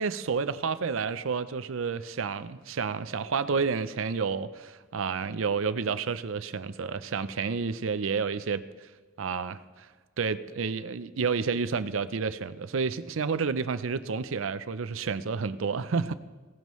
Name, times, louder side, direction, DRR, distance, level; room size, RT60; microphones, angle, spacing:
voice 1, 0.0-8.6 9.2-9.9 10.2-16.1, right 5 dB, 85° right, 13 dB, 0.5 m, -30 dB
19.5 x 17.0 x 3.1 m, 1.3 s
head